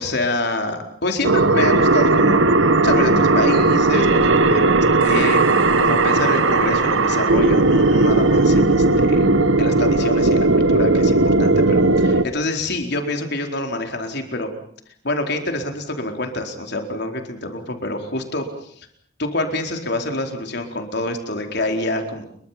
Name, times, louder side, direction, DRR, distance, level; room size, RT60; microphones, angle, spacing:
voice 1, 0.0-2.5 2.8-9.3 9.6-14.5 15.0-18.9 19.2-22.2, left 2 dB, 60° left, 4 dB, 4.4 m, -26 dB
sound 1, 1.2-12.2, right 2 dB, 90° right, 1.6 m, -16 dB
29.0 x 23.5 x 5.9 m, 0.63 s
head